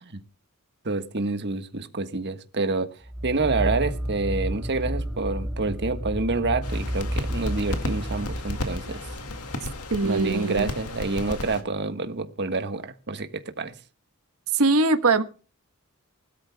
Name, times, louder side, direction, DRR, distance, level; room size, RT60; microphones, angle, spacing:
voice 1, 0.8-9.1 10.0-13.7, right 3 dB, 50° right, 1.4 m, -28 dB
sound 1, 3.0-10.4, equal, ahead, 2.9 m, -31 dB
sound 2, 6.6-11.6, left 2 dB, 85° left, 2.1 m, -34 dB
voice 2, 9.9-10.7 14.5-15.2, right 3 dB, 75° right, 1.4 m, -21 dB
20.5 x 13.0 x 2.3 m
head